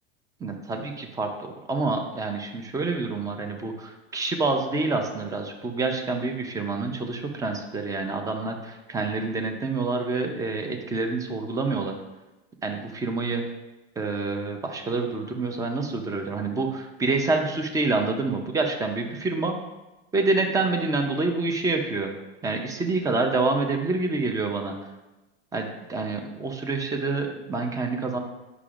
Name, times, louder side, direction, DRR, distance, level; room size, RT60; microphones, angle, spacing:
voice 1, 0.4-11.9 12.6-13.4 14.0-19.6 20.1-22.1 22.4-24.7 25.5-28.2, right 3 dB, 10° right, 4 dB, 0.6 m, -27 dB
8.3 x 6.0 x 2.5 m, 1.1 s
supercardioid pair, 135°, 31 cm